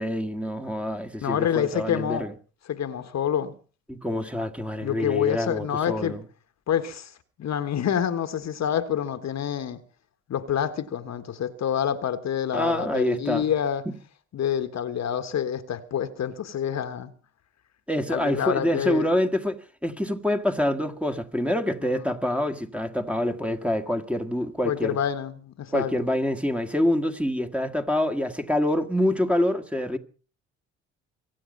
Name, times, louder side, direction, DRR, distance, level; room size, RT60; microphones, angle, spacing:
voice 1, 0.0-2.3 3.9-6.2 12.5-13.5 17.9-19.6 19.8-25.0 25.7-30.0, left 1 dB, 5° right, 1.8 m, -26 dB
voice 2, 1.2-2.3 2.7-3.5 4.8-6.2 6.7-7.1 7.4-9.8 10.3-13.9 14.3-17.1 18.1-19.1 21.9-22.0 24.6-26.1, left 9 dB, 55° left, 1.4 m, -27 dB
24.0 x 8.6 x 5.4 m
hypercardioid pair, 50°, 32 cm